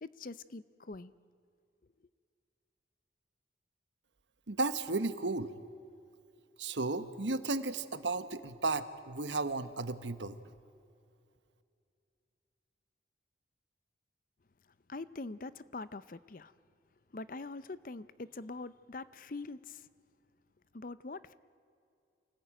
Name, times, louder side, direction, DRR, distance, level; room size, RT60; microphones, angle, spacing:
voice 1, 0.0-1.1 14.9-16.5 17.1-19.9 20.7-21.3, left 3 dB, 45° left, 16 dB, 0.6 m, -44 dB
voice 2, 4.5-5.5 6.6-10.4, right 3 dB, 75° right, 11 dB, 1.2 m, -34 dB
27.5 x 19.0 x 9.0 m, 2.5 s
head